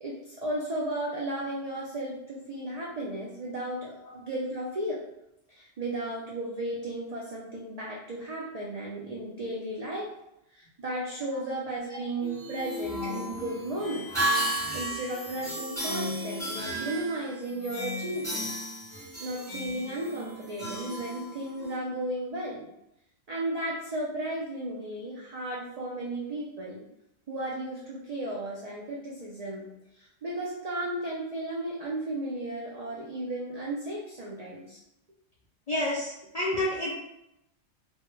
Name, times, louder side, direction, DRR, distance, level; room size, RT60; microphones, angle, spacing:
voice 1, 0.0-5.0 5.5-10.1 10.5-18.7 18.9-22.7 23.3-26.8 27.3-29.7 29.9-34.8, right 1 dB, 80° right, -4 dB, 0.3 m, -34 dB
sound 1, 12.2-21.8, equal, 5° left, 1.0 m, -34 dB
voice 2, 35.7-36.9, left 1 dB, 65° left, -6 dB, 0.3 m, -29 dB
2.1 x 2.1 x 3.0 m, 0.84 s
omnidirectional pair, 1.2 m